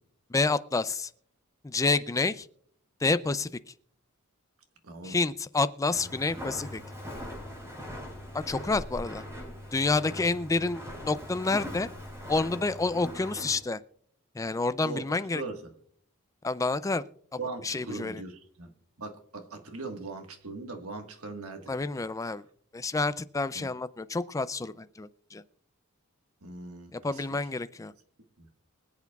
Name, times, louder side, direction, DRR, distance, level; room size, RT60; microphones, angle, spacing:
voice 1, 0.3-1.1 1.6-2.5 3.0-3.5 5.0-6.8 8.3-9.2 9.7-11.9 12.3-13.8 14.4-15.4 16.4-17.0 17.6-18.2 21.7-22.4 22.7-25.4 26.9-27.9, left 3 dB, 15° left, 14 dB, 0.4 m, -29 dB
voice 2, 4.8-5.2 14.8-15.6 17.4-18.7 19.0-21.7 23.5-23.7 26.4-27.2 28.4-28.5, right 3 dB, 75° right, 5 dB, 1.6 m, -40 dB
Walk footsteps, 5.9-13.6, left 1 dB, 15° right, 5.1 m, -41 dB
24.5 x 8.2 x 2.4 m, 0.63 s
head